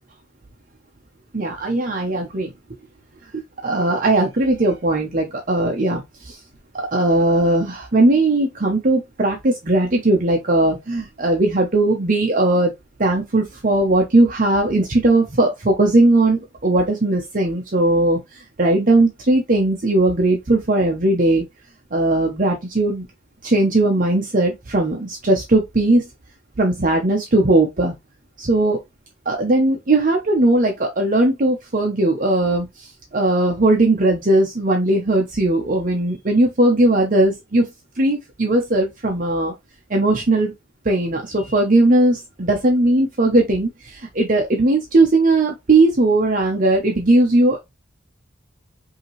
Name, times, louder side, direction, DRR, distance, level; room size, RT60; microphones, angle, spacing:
voice 1, 1.3-2.5 3.3-6.4 6.7-12.7 13.0-21.4 21.9-23.1 23.4-26.1 26.6-27.9 28.4-28.8 29.3-37.7 38.0-39.5 39.9-40.5 40.8-47.6, right 2 dB, 45° right, 0.8 m, -18 dB
5.3 x 2.9 x 3.1 m
head